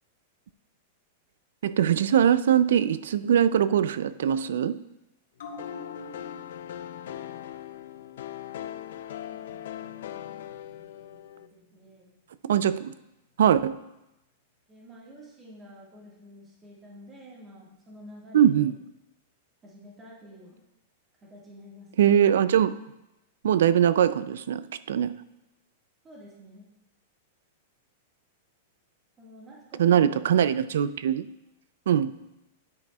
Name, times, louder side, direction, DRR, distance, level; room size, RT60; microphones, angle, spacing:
voice 1, 1.6-4.8 12.4-12.9 13.4-13.8 18.3-18.8 22.0-22.8 23.4-25.2 29.8-31.3 31.9-32.2, right 9 dB, 80° right, 15 dB, 0.4 m, -22 dB
sound 1, 5.4-12.3 12.6-12.7, left 3 dB, 85° left, 1.4 m, -49 dB
sound 2, 5.6-11.5, left 11 dB, 70° left, 0.4 m, -40 dB
voice 2, 9.2-10.6 11.5-12.2 14.7-18.7 19.6-20.6 21.3-21.9 26.0-26.7 29.2-30.6, equal, 15° right, -4 dB, 1.7 m, -49 dB
9.6 x 8.8 x 2.3 m, 0.93 s
supercardioid pair, 165°, 0 cm